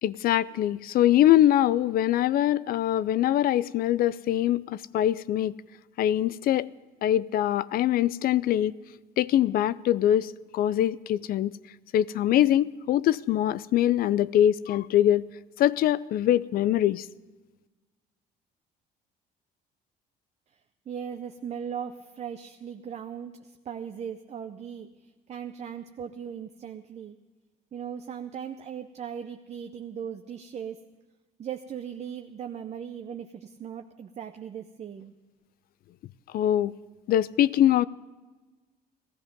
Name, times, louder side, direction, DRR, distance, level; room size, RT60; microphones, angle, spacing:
voice 1, 0.0-5.5 6.0-6.7 7.0-8.7 9.2-11.5 11.9-15.3 15.6-17.1 36.3-36.7 37.1-37.9, left 12 dB, 60° left, 0.4 m, -23 dB
voice 2, 20.9-27.2 27.7-30.8 31.4-35.1, right 8 dB, 40° right, 0.7 m, -38 dB
16.5 x 14.0 x 5.3 m
cardioid pair, 110°, 17 cm